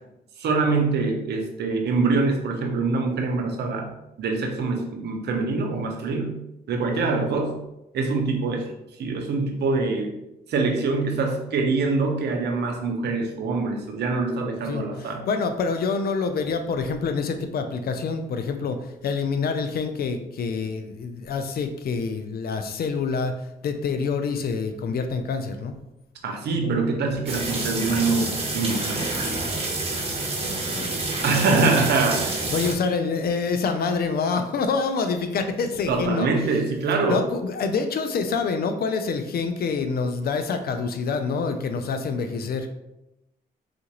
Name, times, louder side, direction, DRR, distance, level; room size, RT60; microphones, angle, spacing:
voice 1, 0.4-3.9 4.2-6.4 6.7-7.6 7.9-8.6 9.0-10.1 10.5-15.2 26.2-29.1 31.2-32.4 35.9-37.2, right 3 dB, 75° right, 3 dB, 0.7 m, -24 dB
voice 2, 14.6-23.3 23.6-25.7 26.6-26.8 30.4-31.0 32.5-36.3 37.1-42.7, left 5 dB, 65° left, 7 dB, 0.5 m, -26 dB
sound 1, 27.3-32.7, right 2 dB, 35° right, 0.9 m, -28 dB
3.8 x 2.5 x 2.9 m, 0.90 s
supercardioid pair, 65°, 17 cm